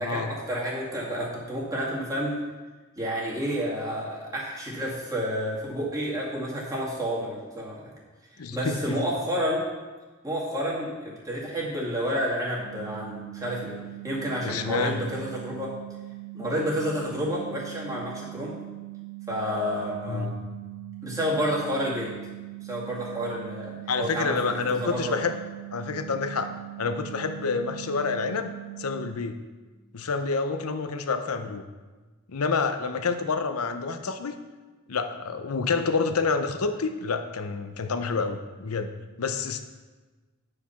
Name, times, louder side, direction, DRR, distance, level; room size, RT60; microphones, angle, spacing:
voice 1, 0.0-2.4 3.0-7.9 8.5-9.6 10.2-15.7 16.3-18.6 19.3-20.3 21.0-22.1 22.6-25.2, equal, 15° right, -5 dB, 2.1 m, -30 dB
voice 2, 8.4-9.0 14.4-15.0 20.1-20.4 23.9-25.4 25.7-26.5 26.8-29.4 29.9-31.7 32.3-34.3 34.9-39.6, left 4 dB, 80° left, 8 dB, 0.7 m, -28 dB
sound 1, 12.6-29.1, right 26 dB, 45° right, 2.1 m, -41 dB
9.4 x 4.9 x 5.7 m, 1.3 s
head